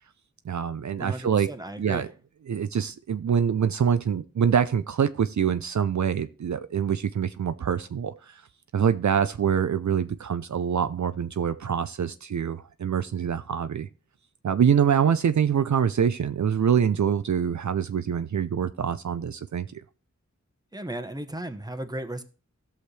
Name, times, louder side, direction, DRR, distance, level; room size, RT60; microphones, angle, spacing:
voice 1, 0.4-1.5 1.8-2.1 2.5-8.4 8.7-13.9 14.4-19.8, right 8 dB, 70° right, 0.5 m, -25 dB
voice 2, 1.0-2.1 20.7-22.2, right 1 dB, 15° right, 1.0 m, -35 dB
16.5 x 6.4 x 3.3 m
wide cardioid pair, 60°, 30 cm